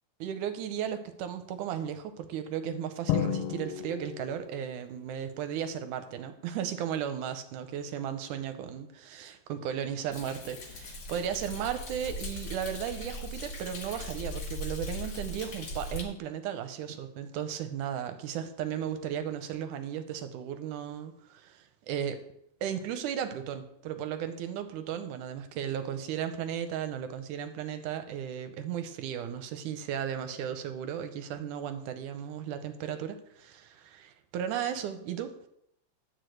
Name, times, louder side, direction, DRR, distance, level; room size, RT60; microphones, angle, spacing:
voice 1, 0.2-22.2 22.6-35.5, right 9 dB, 75° right, 9 dB, 2.1 m, -35 dB
Drum, 3.1-4.8, left 10 dB, 85° left, 2.3 m, -32 dB
Thunder, 10.1-16.0, left 1 dB, 65° left, 1.0 m, -39 dB
10.0 x 4.8 x 7.8 m, 0.76 s
omnidirectional pair, 3.9 m